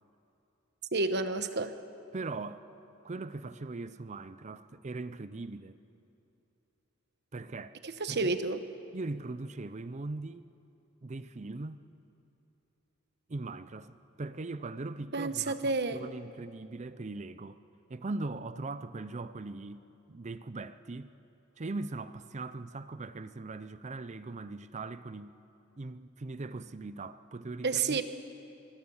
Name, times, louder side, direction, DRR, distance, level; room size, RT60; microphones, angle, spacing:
voice 1, 0.9-1.8 7.8-8.6 15.1-16.0 27.6-28.0, right 3 dB, 50° right, 1.2 m, -30 dB
voice 2, 2.1-2.6 3.0-5.8 7.3-7.8 8.1-8.4 8.9-10.5 11.0-11.9 13.3-17.6 17.9-19.8 20.1-21.1 21.6-25.3 25.8-28.0, right 3 dB, 35° right, 0.6 m, -40 dB
24.5 x 22.5 x 7.2 m
head